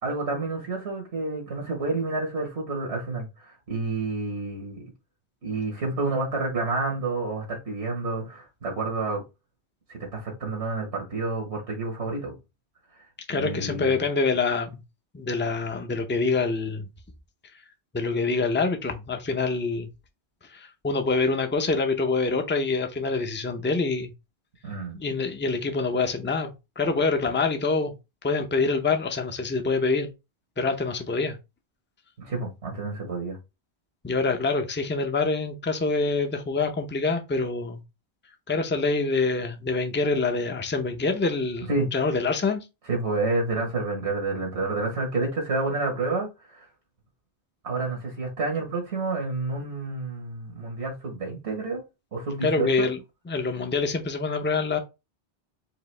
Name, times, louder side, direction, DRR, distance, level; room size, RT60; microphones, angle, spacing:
voice 1, 0.0-4.9 5.4-9.2 9.9-12.3 13.3-14.0 24.6-25.0 32.2-33.4 41.7-41.9 42.9-46.7 47.6-51.8 52.1-52.9, right 3 dB, 80° right, 1.5 m, -29 dB
voice 2, 13.3-14.8 15.1-16.8 17.9-19.9 20.5-24.1 24.9-27.9 28.2-30.1 30.6-31.4 34.0-37.8 38.5-42.6 52.4-53.0 53.3-54.8, left 3 dB, 15° left, 0.4 m, -26 dB
4.8 x 2.8 x 3.2 m
omnidirectional pair, 1.1 m